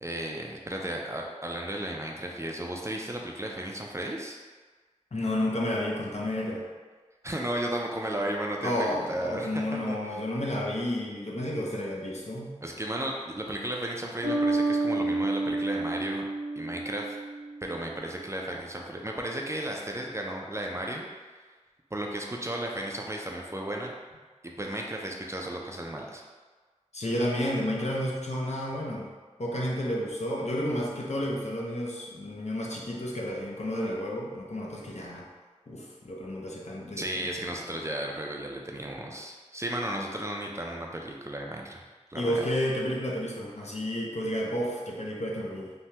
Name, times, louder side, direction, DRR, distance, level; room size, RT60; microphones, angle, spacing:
voice 1, 0.0-4.4 7.2-10.0 12.6-16.2 16.6-17.2 17.6-21.0 21.9-23.9 24.4-26.2 37.0-41.8 42.1-42.5, right 1 dB, 25° right, 0 dB, 0.4 m, -34 dB
voice 2, 5.1-6.6 8.6-12.6 26.9-29.1 29.4-35.3 35.7-37.1 37.4-37.5 42.2-45.7, left 1 dB, 65° left, -3 dB, 0.6 m, -31 dB
Bass guitar, 14.2-17.8, right 2 dB, 70° right, 0.8 m, -29 dB
3.3 x 2.2 x 2.8 m, 1.4 s
wide cardioid pair, 45°, 12 cm